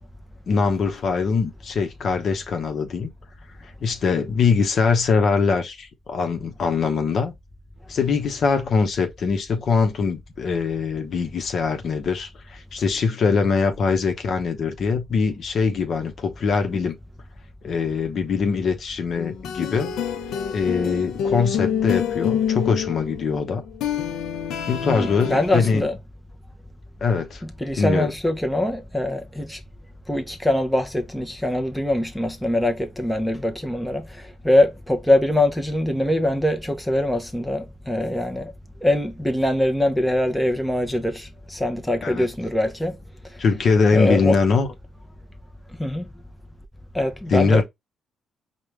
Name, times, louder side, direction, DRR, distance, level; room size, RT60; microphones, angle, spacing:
voice 1, 0.5-3.1 3.8-7.3 7.9-17.0 17.6-19.9 20.5-23.6 24.7-25.9 27.0-27.4 27.8-28.1 42.0-42.3 43.4-44.7 47.3-47.6, left 5 dB, 55° left, 0.9 m, -22 dB
sound 1, 19.2-25.8, left 8 dB, 80° left, 0.6 m, -27 dB
voice 2, 24.8-25.9 27.6-29.6 30.1-38.5 38.8-43.0 43.3-43.4 43.9-44.4 45.8-46.1 46.9-47.6, left 1 dB, 5° left, 0.8 m, -23 dB
4.8 x 2.3 x 3.2 m
cardioid pair, 90°, 0 cm